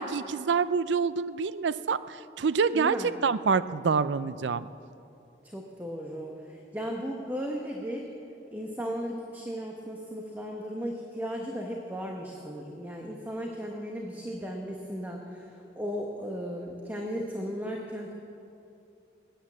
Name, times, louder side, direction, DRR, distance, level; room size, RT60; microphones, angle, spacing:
voice 1, 0.0-3.0 3.2-4.7, right 5 dB, 80° right, 15 dB, 0.5 m, -27 dB
voice 2, 2.7-3.1 5.5-8.1 8.5-18.1, equal, 10° right, 0 dB, 1.0 m, -36 dB
19.5 x 9.2 x 7.4 m, 2.7 s
head